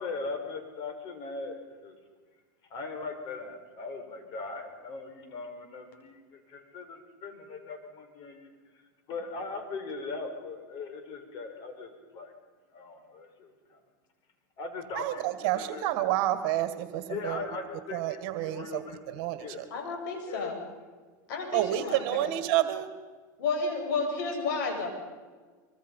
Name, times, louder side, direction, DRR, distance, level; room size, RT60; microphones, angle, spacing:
voice 1, 0.0-2.0 2.7-8.5 9.1-12.3 12.7-13.8 14.6-15.9 17.1-19.8 20.3-20.5 21.8-21.9 22.2-22.3, left 3 dB, 50° left, 5 dB, 5.3 m, -40 dB
voice 2, 14.9-17.4 17.9-18.8 19.1-19.7 21.5-22.9, right 14 dB, 60° right, 10 dB, 1.9 m, -29 dB
voice 3, 19.7-20.6 21.3-22.3 23.4-24.9, left 4 dB, 75° left, 2 dB, 7.7 m, -31 dB
24.0 x 24.0 x 5.6 m, 1.4 s
supercardioid pair, 120°, 10 cm